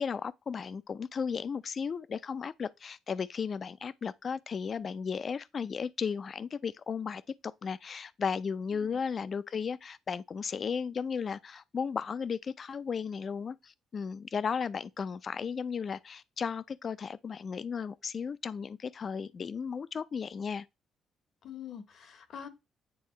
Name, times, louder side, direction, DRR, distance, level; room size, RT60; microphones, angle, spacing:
voice 1, 0.0-20.7, left 6 dB, 45° left, 0.4 m, -35 dB
voice 2, 21.4-22.5, left 8 dB, 65° left, 1.0 m, -45 dB
9.1 x 3.7 x 3.2 m
cardioid pair, 90°, 0 cm